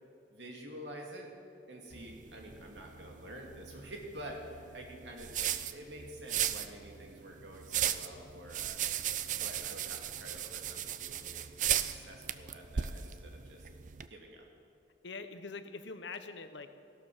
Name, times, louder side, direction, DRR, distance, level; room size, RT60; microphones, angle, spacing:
voice 1, 0.3-1.3 1.7-8.8 9.3-13.7 14.1-14.5, right 1 dB, 80° right, 1 dB, 2.5 m, -48 dB
sound 1, 1.9-14.1, right 10 dB, 45° right, 0.5 m, -37 dB
voice 2, 15.0-16.8, left 4 dB, 85° left, 10 dB, 0.9 m, -44 dB
16.0 x 12.0 x 6.2 m, 2.5 s
head